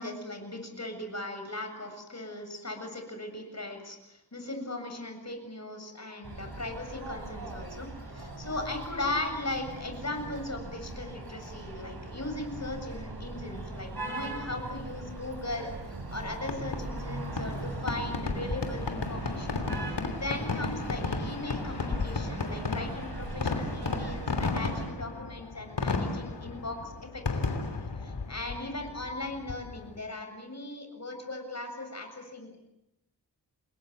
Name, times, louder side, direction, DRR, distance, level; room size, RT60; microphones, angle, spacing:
voice 1, 0.0-27.6 27.9-32.6, left 2 dB, 40° left, 5 dB, 7.4 m, -38 dB
sound 1, 6.2-24.9, right 2 dB, 65° right, 7.6 m, -40 dB
Fireworks, 16.4-30.0, left 3 dB, 90° left, 3.1 m, -34 dB
28.5 x 21.5 x 8.0 m, 0.88 s
wide cardioid pair, 85°, 41 cm